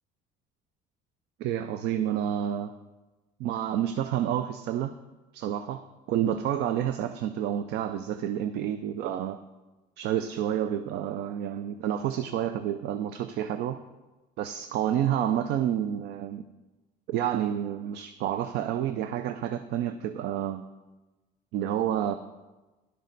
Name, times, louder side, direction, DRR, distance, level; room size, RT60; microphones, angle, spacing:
voice 1, 1.4-2.8 3.4-4.9 5.3-9.4 10.0-13.8 14.4-16.4 17.1-20.6 21.5-22.1, right 10 dB, 85° right, 11 dB, 0.4 m, -29 dB
11.0 x 6.4 x 3.9 m, 1.1 s
cardioid pair, 110°, 17 cm